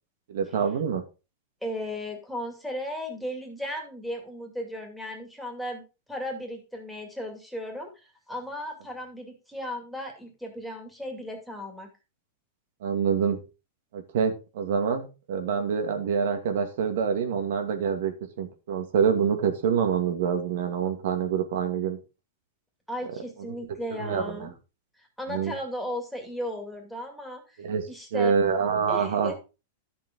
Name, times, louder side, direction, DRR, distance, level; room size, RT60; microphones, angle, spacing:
voice 1, 0.3-1.0 12.8-13.4 13.9-22.0 24.0-24.5 25.3-25.5 27.6-27.8 28.1-29.3, right 6 dB, 70° right, 6 dB, 2.3 m, -26 dB
voice 2, 1.6-5.8 6.1-11.9 22.9-24.5 25.0-27.6 27.9-28.4 28.9-29.4, equal, ahead, 2 dB, 2.5 m, -36 dB
11.5 x 7.1 x 3.8 m, 0.30 s
supercardioid pair, 145°, 0 cm